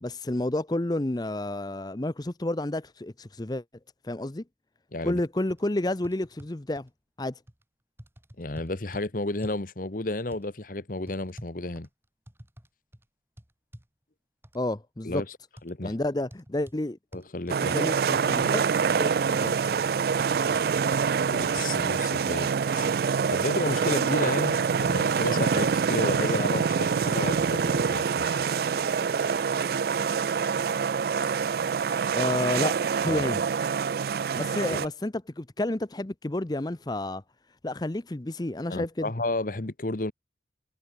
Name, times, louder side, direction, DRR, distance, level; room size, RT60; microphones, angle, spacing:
voice 1, 0.0-3.6 4.0-4.4 5.0-6.9 7.2-7.4 14.5-15.2 15.8-17.0 17.7-18.6 19.0-19.5 32.1-33.4 34.3-37.2 37.6-39.1, left 1 dB, 20° left, 0.7 m, -30 dB
voice 2, 4.9-5.2 8.4-11.9 15.0-15.3 15.6-16.0 17.1-17.8 21.3-22.5 22.8-22.9 23.3-28.5 33.1-33.2 34.7-34.8 38.7-40.1, left 2 dB, 50° left, 1.2 m, -32 dB
sound 1, 5.1-5.2 5.5-5.6 6.0-6.9 7.5-7.6 8.0-9.1 9.4-9.7 10.3-10.5 11.1-12.7 12.9-13.1 13.4-13.9 14.4-14.6 15.6-15.7 16.3-16.8 17.1-18.5 18.9-19.0 19.5-19.6 20.2-20.6 20.9-21.0 21.6-21.7, equal, 15° right, 1.9 m, -47 dB
sound 2, 17.5-34.9, right 6 dB, 55° right, 0.3 m, -26 dB
head